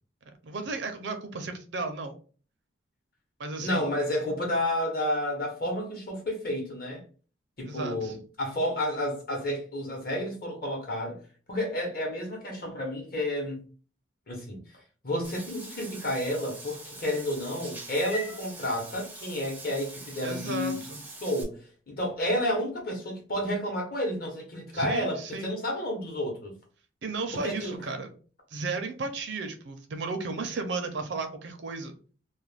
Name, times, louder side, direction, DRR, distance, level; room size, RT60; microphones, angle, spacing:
voice 1, 0.4-2.1 3.4-3.8 7.6-8.2 20.2-21.0 24.7-25.5 27.0-28.1 28.5-31.9, right 3 dB, 65° right, 0.5 m, -34 dB
voice 2, 3.6-7.0 7.6-11.2 11.5-13.6 14.3-14.6 15.0-20.8 21.2-26.5 27.4-27.8, left 1 dB, 50° left, 0.9 m, -31 dB
Meow / Water / Bathtub (filling or washing), 15.2-21.4, right 1 dB, 10° right, 0.4 m, -43 dB
2.3 x 2.1 x 3.2 m
head